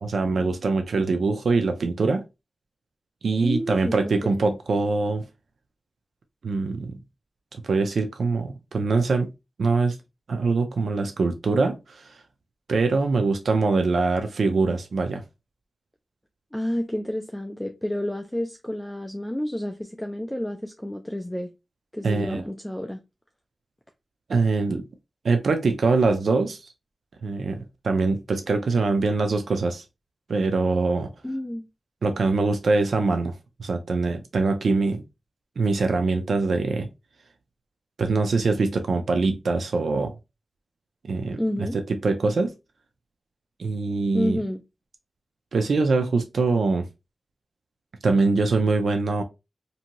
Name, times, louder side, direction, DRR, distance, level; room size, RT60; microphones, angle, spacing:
voice 1, 0.0-2.2 3.2-5.2 6.4-7.0 7.5-9.3 9.6-10.0 10.3-12.1 12.7-15.2 22.0-22.4 24.3-24.8 25.2-26.7 27.2-29.8 30.3-31.1 32.0-33.3 33.6-35.0 35.6-36.9 38.0-40.1 41.0-42.5 43.6-44.4 45.5-46.9 48.0-49.2, right 3 dB, 80° right, 0.4 m, -23 dB
voice 2, 3.4-4.6 16.5-21.5 21.9-23.0 31.2-31.7 41.3-41.8 44.1-44.6, left 1 dB, 5° left, 0.3 m, -30 dB
2.6 x 2.6 x 2.8 m
wide cardioid pair, 130°, 0 cm